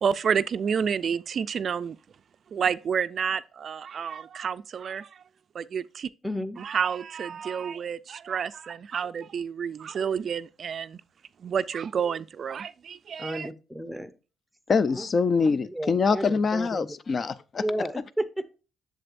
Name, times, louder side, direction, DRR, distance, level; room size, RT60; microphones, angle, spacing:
voice 1, 0.0-2.0 2.5-5.2 5.5-6.1 6.6-11.0 11.4-13.5, right 7 dB, 55° right, 0.3 m, -29 dB
voice 2, 6.2-6.6 13.2-14.1 14.9-15.1 15.7-16.9 17.6-18.5, equal, ahead, 0.7 m, -32 dB
voice 3, 14.7-17.6, left 5 dB, 40° left, 0.4 m, -24 dB
7.6 x 6.7 x 2.5 m
cardioid pair, 90°, 0 cm